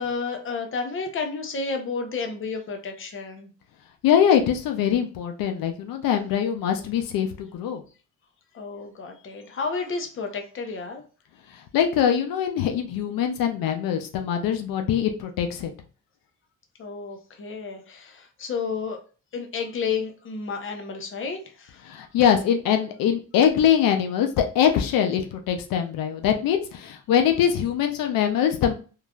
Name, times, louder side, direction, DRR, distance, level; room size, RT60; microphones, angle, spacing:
voice 1, 0.0-3.5 8.5-11.0 16.8-19.0 19.3-21.8, left 5 dB, 40° left, 4 dB, 0.6 m, -31 dB
voice 2, 4.0-7.8 11.7-15.7 21.9-28.7, left 9 dB, 85° left, 4 dB, 0.5 m, -23 dB
3.1 x 2.4 x 2.2 m, 0.36 s
cardioid pair, 120°, 33 cm